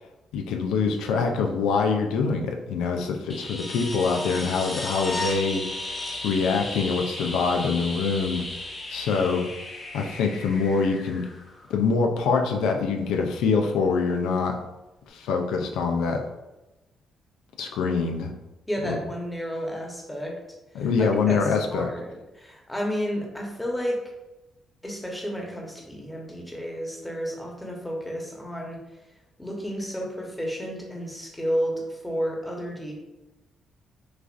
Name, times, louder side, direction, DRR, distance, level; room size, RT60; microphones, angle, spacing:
voice 1, 0.3-5.6 5.9-8.5 8.9-9.5 9.9-11.2 11.7-14.6 15.1-16.2 17.6-18.3 18.9-19.0 20.7-21.9, left 5 dB, 90° left, 3 dB, 0.4 m, -24 dB
sound 1, 3.3-12.0 14.3-14.4, left 2 dB, 35° left, 0.9 m, -35 dB
voice 2, 18.7-20.3 20.8-24.0 24.8-28.8 29.4-33.0, equal, 10° left, -1 dB, 1.1 m, -31 dB
6.2 x 2.4 x 2.6 m, 1.0 s
cardioid pair, 90°, 0 cm